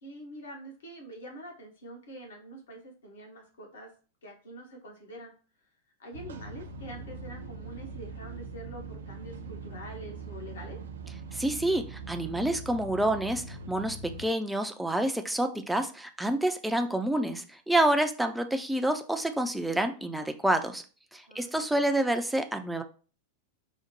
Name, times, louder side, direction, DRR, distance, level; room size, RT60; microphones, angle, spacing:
voice 1, 0.0-3.9 4.2-5.3 6.0-10.8 21.3-21.9, right 1 dB, 65° left, 1 dB, 1.1 m, -45 dB
sound 1, 6.1-14.2, right 3 dB, 65° right, 0.4 m, -42 dB
voice 2, 11.3-20.8 21.1-22.8, right 1 dB, 5° right, 6 dB, 0.4 m, -28 dB
4.9 x 2.1 x 3.0 m, 0.38 s
figure-of-eight pair, 90°, 0 cm